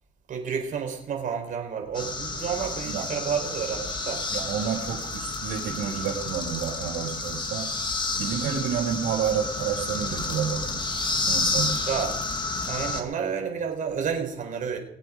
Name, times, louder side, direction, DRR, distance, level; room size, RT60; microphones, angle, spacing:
voice 1, 0.3-4.2 11.9-12.1 12.7-14.8, right 7 dB, 50° right, 3 dB, 4.4 m, -30 dB
sound 1, 1.9-13.0, left 3 dB, 25° left, 2.2 m, -30 dB
voice 2, 4.3-7.7 8.2-10.8 11.3-11.8, right 8 dB, 80° right, -6 dB, 4.9 m, -29 dB
22.5 x 8.5 x 5.3 m, 0.77 s
cardioid pair, 110°, 17 cm